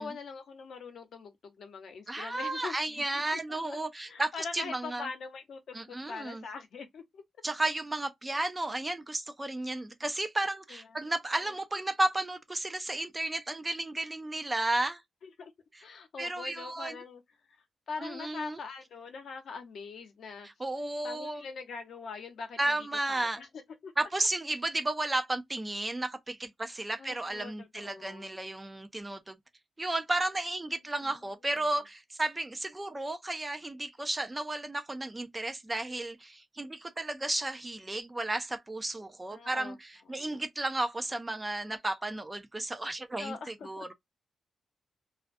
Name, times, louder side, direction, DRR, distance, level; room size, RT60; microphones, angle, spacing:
voice 1, 0.0-3.8 4.1-7.2 10.7-11.1 15.2-15.5 15.8-17.2 17.9-20.5 21.0-22.8 23.1-23.5 23.8-23.9 27.0-28.3 31.0-31.2 39.3-39.8 40.1-40.4 43.2-43.9, left 5 dB, 65° left, 0.7 m, -43 dB
voice 2, 2.1-5.1 5.7-6.4 7.4-15.0 15.7-15.8 16.2-17.0 18.0-18.6 20.4-21.4 22.6-23.4 24.0-29.4 29.8-43.9, right 2 dB, 15° right, 0.4 m, -33 dB
2.4 x 2.2 x 2.4 m
wide cardioid pair, 160°, 0 cm